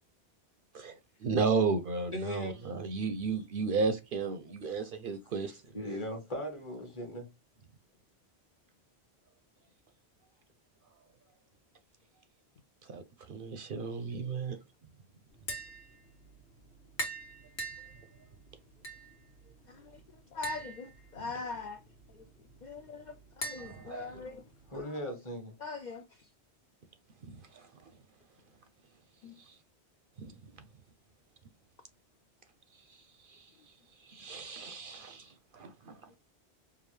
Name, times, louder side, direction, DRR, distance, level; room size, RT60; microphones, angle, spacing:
voice 1, 0.7-5.6 12.9-13.0 13.3-14.6 23.6-24.2 27.3-27.7 30.2-30.3 33.2-33.5 34.0-35.9, right 4 dB, 60° right, 0.6 m, -34 dB
voice 2, 2.1-2.6 4.6-4.8 5.5-7.3 24.7-25.5, equal, 30° left, 1.1 m, -39 dB
Tap, 15.3-24.8, right 1 dB, 85° left, 1.4 m, -45 dB
voice 3, 19.7-20.0 20.3-21.8 22.1-22.2 22.6-24.4 25.6-26.3 29.2-29.4, left 4 dB, 55° left, 0.5 m, -42 dB
4.8 x 2.3 x 3.2 m
omnidirectional pair, 1.1 m